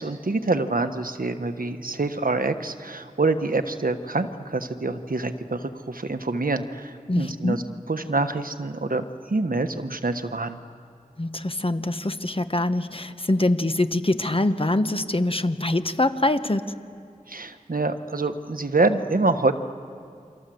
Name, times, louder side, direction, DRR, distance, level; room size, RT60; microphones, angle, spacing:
voice 1, 0.0-7.6 7.9-10.6 17.3-19.5, right 3 dB, 85° right, 8 dB, 1.3 m, -26 dB
voice 2, 7.1-7.6 11.2-16.7, left 2 dB, 40° left, 10 dB, 1.3 m, -24 dB
29.0 x 25.5 x 7.8 m, 2.5 s
wide cardioid pair, 40°, 14 cm